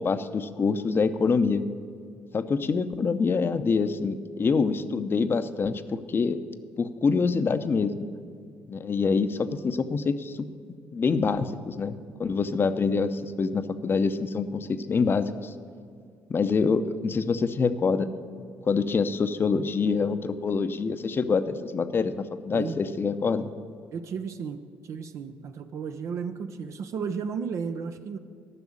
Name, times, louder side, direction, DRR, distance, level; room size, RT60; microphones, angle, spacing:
voice 1, 0.0-1.6 2.3-6.4 6.8-8.0 8.7-10.5 10.9-15.5 16.3-18.1 18.6-23.5, left 5 dB, 40° left, 11 dB, 0.7 m, -26 dB
voice 2, 23.9-28.2, right 6 dB, 60° right, 8 dB, 0.6 m, -34 dB
11.0 x 6.1 x 8.6 m, 2.2 s
hypercardioid pair, 60°, 6 cm